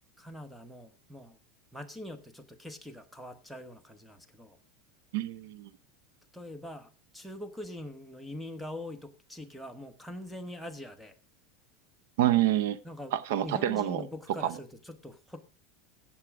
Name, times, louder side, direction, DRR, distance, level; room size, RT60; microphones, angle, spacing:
voice 1, 0.2-1.4 1.7-4.6 6.3-11.2 12.8-13.2 13.4-15.4, left 1 dB, ahead, 1.0 m, -43 dB
voice 2, 5.1-5.7 12.2-12.8 13.1-14.0 14.4-14.5, right 12 dB, 70° right, 0.7 m, -27 dB
16.5 x 7.2 x 4.8 m
supercardioid pair, 165°, 0 cm